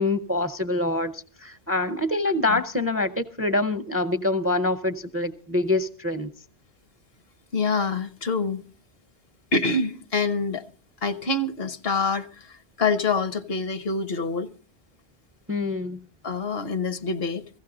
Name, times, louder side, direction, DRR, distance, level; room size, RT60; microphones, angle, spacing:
voice 1, 0.0-6.3 15.5-16.0, left 2 dB, 15° right, 0.5 m, -25 dB
voice 2, 7.5-8.6 9.5-10.6 11.0-14.5 16.2-17.5, left 3 dB, 70° left, 1.1 m, -26 dB
16.0 x 15.5 x 3.9 m
omnidirectional pair, 1.1 m